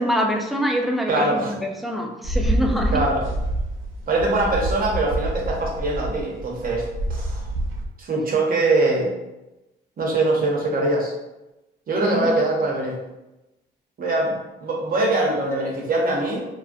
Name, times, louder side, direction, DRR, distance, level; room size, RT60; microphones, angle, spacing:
voice 1, 0.0-3.0 12.0-12.4, equal, ahead, 1 dB, 0.4 m, -25 dB
voice 2, 1.1-1.6 2.9-3.2 4.1-7.5 8.0-9.1 10.0-11.1 11.9-13.0 14.0-16.5, right 2 dB, 45° right, -1 dB, 0.7 m, -22 dB
sound 1, 2.2-7.8, right 1 dB, 80° right, 0.5 m, -27 dB
2.3 x 2.1 x 2.6 m, 0.98 s
cardioid pair, 90°, 20 cm